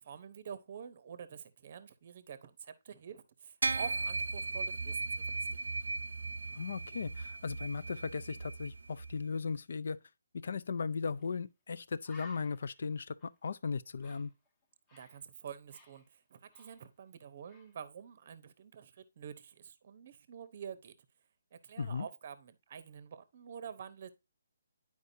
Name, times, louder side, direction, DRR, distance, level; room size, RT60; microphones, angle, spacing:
voice 1, 0.0-5.5 14.9-21.0 21.5-24.1, right 7 dB, 40° right, 0.7 m, -48 dB
sound 1, 3.6-9.2, right 3 dB, 85° right, 0.4 m, -37 dB
voice 2, 6.6-10.0 10.3-14.3 21.8-22.1, left 5 dB, 60° left, 0.4 m, -37 dB
Bird, 11.2-11.3 11.7-11.8 12.0-15.2 15.5-17.2 17.5-17.8, left 3 dB, 15° left, 0.8 m, -59 dB
9.8 x 4.7 x 2.6 m
hypercardioid pair, 165°, 0 cm